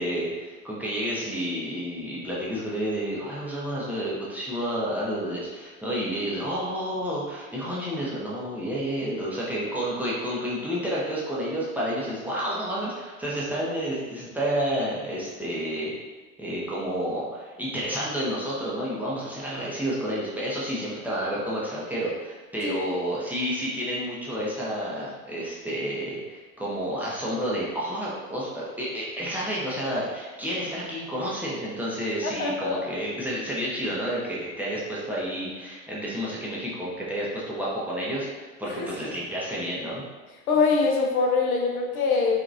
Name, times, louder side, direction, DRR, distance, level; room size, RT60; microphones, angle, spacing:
voice 1, 0.0-15.9 16.4-40.0, equal, 5° right, -7 dB, 0.5 m, -30 dB
voice 2, 32.2-32.8 38.6-38.9 40.5-42.4, left 4 dB, 80° left, 0 dB, 0.6 m, -24 dB
2.8 x 2.5 x 2.5 m, 1.3 s
figure-of-eight pair, 75°, 42 cm